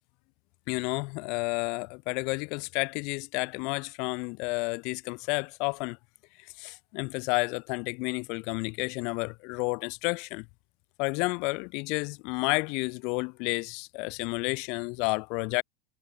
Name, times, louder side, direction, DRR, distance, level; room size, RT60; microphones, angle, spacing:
voice 1, 0.7-6.0 6.4-10.4 11.0-15.6, left 31 dB, 45° left, 1.6 m, -31 dB
supercardioid pair, 155°, 0 cm